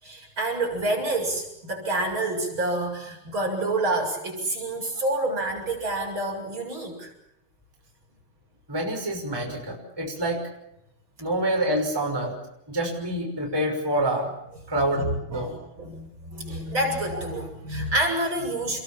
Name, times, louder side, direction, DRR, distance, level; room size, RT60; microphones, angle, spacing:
voice 1, 0.0-7.1 14.9-18.8, right 2 dB, 30° right, 1 dB, 8.1 m, -28 dB
voice 2, 8.7-10.4 11.2-12.3 12.7-14.3 14.7-15.5, right 1 dB, 5° right, 0 dB, 5.8 m, -27 dB
29.5 x 22.5 x 7.4 m, 0.84 s
omnidirectional pair, 4.2 m